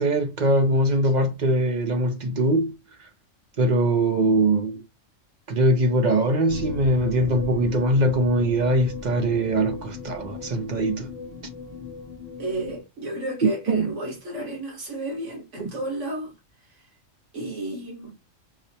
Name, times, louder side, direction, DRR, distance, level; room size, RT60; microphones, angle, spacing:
voice 1, 0.0-3.1 3.6-4.8 5.5-11.1 13.4-13.9, right 1 dB, 50° right, 0.6 m, -22 dB
sound 1, 6.5-12.8, left 4 dB, 65° left, 1.1 m, -37 dB
voice 2, 12.4-16.3 17.3-18.1, right 1 dB, 70° right, 1.8 m, -32 dB
4.8 x 2.1 x 2.7 m
omnidirectional pair, 1.3 m